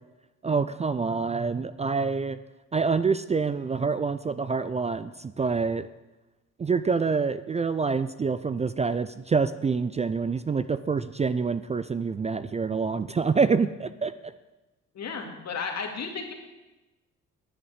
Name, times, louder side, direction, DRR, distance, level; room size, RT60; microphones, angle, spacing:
voice 1, 0.4-2.4 2.7-5.9 6.6-14.3, right 5 dB, 20° right, 13 dB, 0.4 m, -26 dB
voice 2, 14.9-16.3, left 5 dB, 60° left, 3 dB, 2.2 m, -33 dB
10.0 x 7.7 x 8.1 m, 1.1 s
cardioid pair, 90°, 30 cm